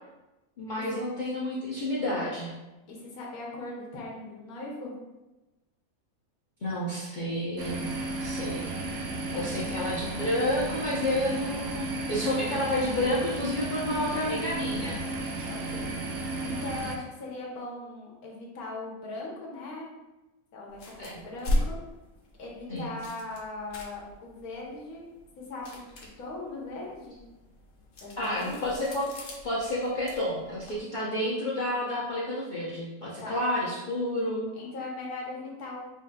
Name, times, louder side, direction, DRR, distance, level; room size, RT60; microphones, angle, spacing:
voice 1, 0.6-2.5 6.6-8.6 9.3-15.0 21.0-21.3 22.7-22.9 28.2-29.1 29.4-34.4, left 1 dB, 45° left, -7 dB, 0.7 m, -30 dB
voice 2, 2.9-4.9 9.3-9.5 15.5-15.9 16.4-19.9 20.5-21.8 22.4-25.1 25.4-25.8 26.2-27.2 28.0-28.7 33.2-33.4 34.5-35.8, left 2 dB, 85° left, -2 dB, 1.4 m, -39 dB
sound 1, 7.6-17.0, right 2 dB, 65° right, 0.8 m, -34 dB
sound 2, 20.7-30.8, left 1 dB, 65° left, 1.1 m, -38 dB
5.2 x 3.1 x 2.2 m, 1.1 s
omnidirectional pair, 1.5 m